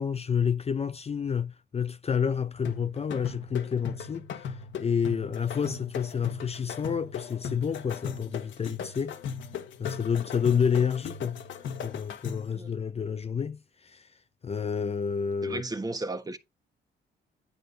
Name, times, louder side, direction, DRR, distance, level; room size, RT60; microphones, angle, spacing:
voice 1, 0.0-9.2 9.8-11.4 11.8-14.1 14.4-15.6, left 7 dB, 30° left, 0.6 m, -29 dB
sound 1, 2.6-12.6, left 7 dB, 70° left, 1.4 m, -38 dB
voice 2, 15.4-16.4, right 2 dB, 20° right, 1.3 m, -34 dB
10.5 x 4.8 x 3.8 m
cardioid pair, 90°, 20 cm